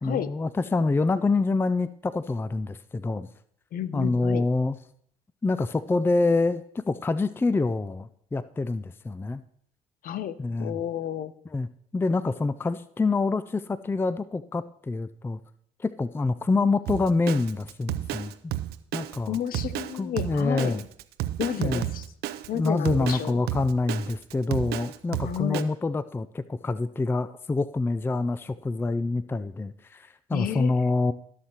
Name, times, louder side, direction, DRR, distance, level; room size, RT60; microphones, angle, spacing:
voice 1, 0.0-3.3 3.9-4.8 5.4-9.4 10.4-10.8 11.5-11.7 11.9-15.4 15.8-18.3 18.9-19.4 20.0-20.8 21.6-21.9 22.5-31.1, left 3 dB, 10° left, 15 dB, 0.4 m, -26 dB
voice 2, 3.7-4.4 10.0-11.3 19.3-20.8 21.4-22.0 22.5-23.4 25.2-25.7 30.3-30.9, left 10 dB, 55° left, 15 dB, 0.7 m, -31 dB
Drum kit, 16.9-25.6, right 14 dB, 65° right, 0.6 m, -32 dB
16.0 x 6.7 x 2.9 m, 0.67 s
hypercardioid pair, 55°, 18 cm